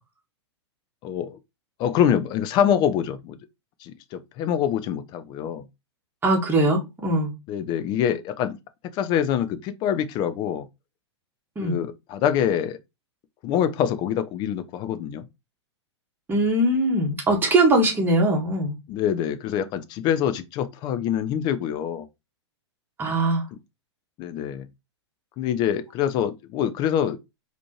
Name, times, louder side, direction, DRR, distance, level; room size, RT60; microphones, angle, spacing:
voice 1, 1.0-1.4 1.8-3.4 3.8-5.6 7.5-8.6 8.9-10.7 11.6-12.8 13.4-15.3 18.9-22.1 23.5-23.6 24.2-24.7 25.4-27.2, left 9 dB, 30° left, 0.5 m, -25 dB
voice 2, 6.2-7.3 11.6-11.8 16.3-18.8 23.0-23.4, right 1 dB, 15° right, 1.4 m, -21 dB
4.2 x 2.9 x 3.0 m
figure-of-eight pair, 105°, 15 cm